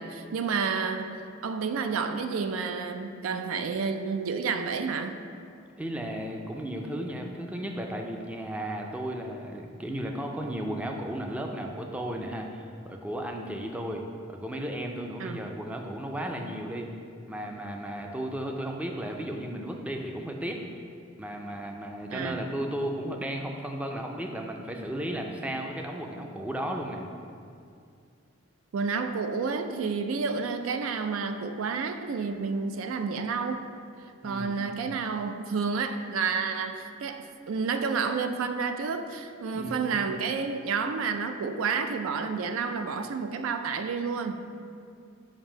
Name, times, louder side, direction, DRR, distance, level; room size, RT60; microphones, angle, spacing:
voice 1, 0.0-5.2 15.2-15.5 22.1-22.4 28.7-33.6 34.2-44.4, right 5 dB, 80° right, 8 dB, 0.4 m, -30 dB
voice 2, 5.8-16.9 17.3-20.7 21.2-27.1 34.2-34.6 39.5-40.0, right 1 dB, 5° right, 2 dB, 0.4 m, -34 dB
7.3 x 2.7 x 4.9 m, 2.4 s
head